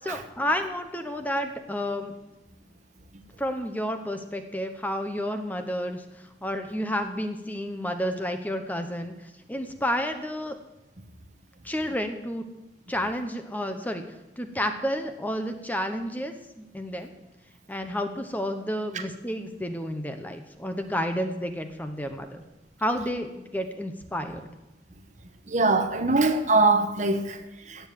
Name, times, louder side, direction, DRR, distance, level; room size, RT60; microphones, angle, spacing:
voice 1, 0.0-2.1 3.4-6.0 6.4-9.1 9.5-10.6 11.6-12.4 12.9-14.0 14.4-17.1 17.7-22.4 22.8-24.4, equal, 10° left, 0.9 m, -30 dB
voice 2, 25.5-27.9, right 3 dB, 40° right, 1.2 m, -23 dB
17.0 x 7.1 x 7.6 m
head